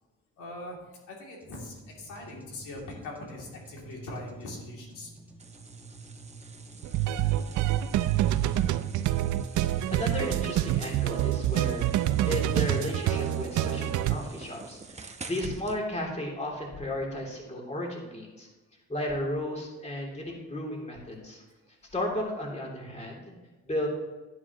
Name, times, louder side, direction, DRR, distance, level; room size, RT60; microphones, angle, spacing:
voice 1, 0.4-0.8 1.1-5.1 6.6-6.7 9.6-9.8, left 2 dB, 85° left, -2 dB, 2.7 m, -41 dB
sound 1, 1.4-13.3, right 3 dB, 5° right, 1.9 m, -51 dB
sound 2, 5.4-15.8, right 4 dB, 20° right, 0.9 m, -48 dB
sound 3, 6.8-14.2, right 13 dB, 75° right, 0.5 m, -26 dB
voice 2, 9.9-11.9 12.2-18.5 18.9-21.4 21.9-23.2 23.6-23.9, left 1 dB, 20° left, -1 dB, 2.9 m, -34 dB
11.5 x 9.6 x 3.0 m, 1.1 s
cardioid pair, 90°, 30 cm